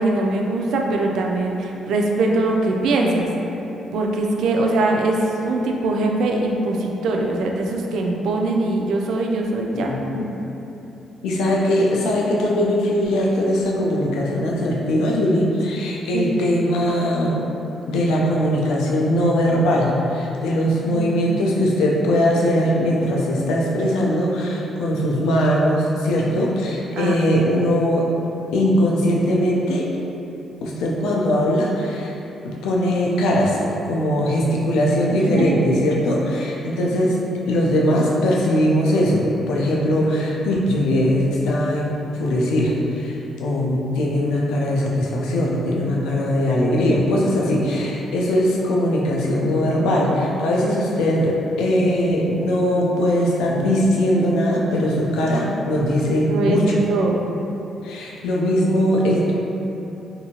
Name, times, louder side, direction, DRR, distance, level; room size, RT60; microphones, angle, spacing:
voice 1, 0.0-3.3 3.9-9.9 16.1-16.4 20.8-21.3 26.9-27.2 35.1-35.6 56.2-56.6 56.9-57.2, right 2 dB, 75° right, 0 dB, 0.3 m, -22 dB
voice 2, 9.7-10.3 11.2-17.4 17.9-28.0 28.5-29.9 30.6-32.1 32.4-33.6 33.8-37.2 37.5-56.7 57.8-59.3, equal, 90° left, -3 dB, 0.4 m, -20 dB
2.7 x 2.6 x 2.8 m, 3.0 s
cardioid pair, 90°, 0 cm